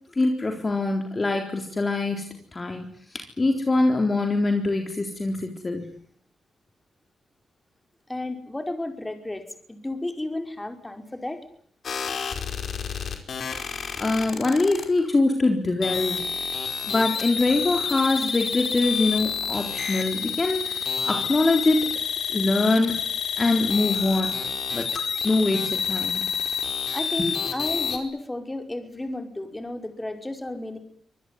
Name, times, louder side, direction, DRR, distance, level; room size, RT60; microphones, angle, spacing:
voice 1, 0.2-2.3 2.5-5.8 14.0-16.2 16.9-22.0 22.3-22.9 23.4-24.4 24.7-24.9 25.2-26.2 27.2-27.3, left 2 dB, 30° left, 3 dB, 3.9 m, -23 dB
voice 2, 8.1-11.4 26.9-30.8, left 1 dB, 15° left, 6 dB, 5.1 m, -32 dB
sound 1, 11.8-14.9 15.8-28.0, left 6 dB, 60° left, 4.7 m, -29 dB
25.0 x 20.0 x 9.7 m, 0.62 s
cardioid pair, 80°, 0 cm